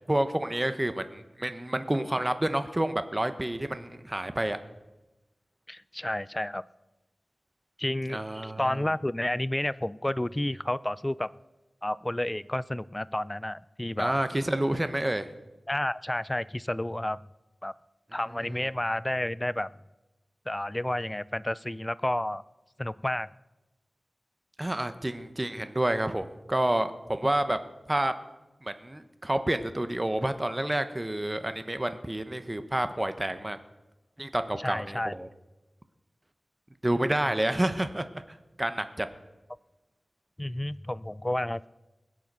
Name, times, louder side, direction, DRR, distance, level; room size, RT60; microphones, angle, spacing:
voice 1, 0.1-4.6 8.1-8.8 14.0-15.3 18.4-18.5 24.6-27.6 27.9-28.1 28.6-33.6 34.2-35.3 36.8-38.1 38.6-39.1, right 1 dB, 20° right, 10 dB, 0.9 m, -29 dB
voice 2, 5.7-6.6 7.8-11.3 11.8-14.1 15.7-17.2 17.6-17.7 18.1-19.7 20.5-22.4 22.8-23.3 34.6-35.1 40.4-41.7, left 1 dB, 20° left, 18 dB, 0.4 m, -31 dB
20.5 x 8.0 x 6.1 m, 1.0 s
wide cardioid pair, 80°, 0 cm